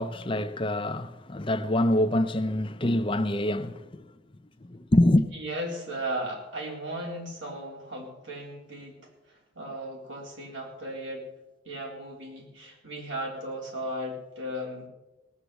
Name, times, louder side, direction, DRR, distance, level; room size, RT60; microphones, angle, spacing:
voice 1, 0.0-4.1 4.6-5.3, left 1 dB, 25° left, 0.6 m, -25 dB
voice 2, 5.3-11.3 11.7-14.9, right 1 dB, 85° right, 4.1 m, -36 dB
18.0 x 7.4 x 8.1 m
head